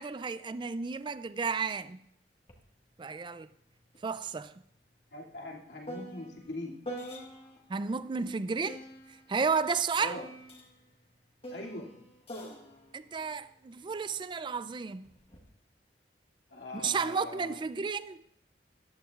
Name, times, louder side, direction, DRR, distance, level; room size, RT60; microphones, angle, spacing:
voice 1, 0.0-2.0 3.0-3.5 4.0-4.5 7.7-8.8 9.3-10.2 12.9-15.1 16.7-18.2, right 5 dB, 25° right, 0.3 m, -32 dB
sound 1, 2.5-2.6 3.0-7.7 8.7-14.2 15.0-15.5, equal, 35° left, 1.5 m, -46 dB
voice 2, 5.1-6.8 10.0-10.2 11.5-11.9 16.5-17.6, left 1 dB, 85° left, 2.4 m, -42 dB
14.0 x 12.0 x 2.4 m
head